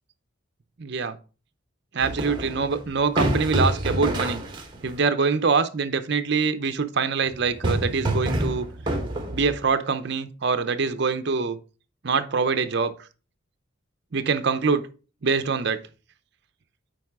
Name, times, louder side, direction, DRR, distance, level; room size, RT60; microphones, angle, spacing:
voice 1, 0.8-1.2 1.9-4.4 4.8-8.7 9.3-11.6 12.0-12.9 14.1-14.8 15.2-15.8, right 5 dB, 55° right, 0.6 m, -24 dB
sound 1, 2.0-4.9 7.3-9.7, right 1 dB, 20° right, 1.2 m, -27 dB
7.7 x 4.8 x 3.5 m
head